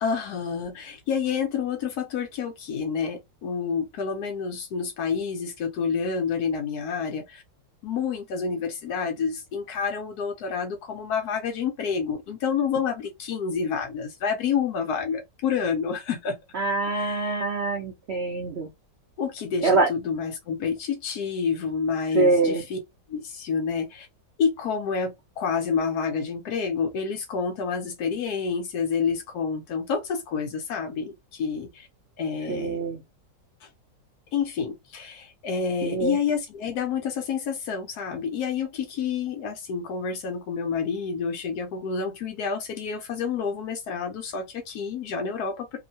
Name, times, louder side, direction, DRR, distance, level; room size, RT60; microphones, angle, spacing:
voice 1, 0.0-7.4 7.8-16.4 16.8-17.4 19.2-22.8 23.1-24.1 24.4-31.9 32.2-32.9 33.6-33.7 34.3-45.8, left 6 dB, 70° left, 1.0 m, -29 dB
voice 2, 16.5-18.7 19.6-19.9 22.1-22.6 32.5-33.0 35.8-36.2, right 3 dB, 75° right, 0.6 m, -24 dB
3.0 x 2.0 x 2.6 m
omnidirectional pair, 2.0 m